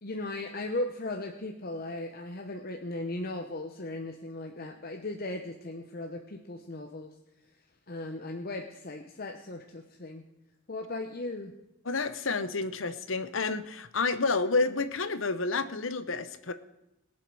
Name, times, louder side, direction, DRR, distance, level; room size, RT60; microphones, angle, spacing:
voice 1, 0.0-7.1 7.9-10.2 10.7-11.5, left 2 dB, 50° left, 4 dB, 0.9 m, -37 dB
voice 2, 11.8-16.5, left 3 dB, 75° left, 12 dB, 0.9 m, -29 dB
21.0 x 7.6 x 4.8 m, 0.91 s
head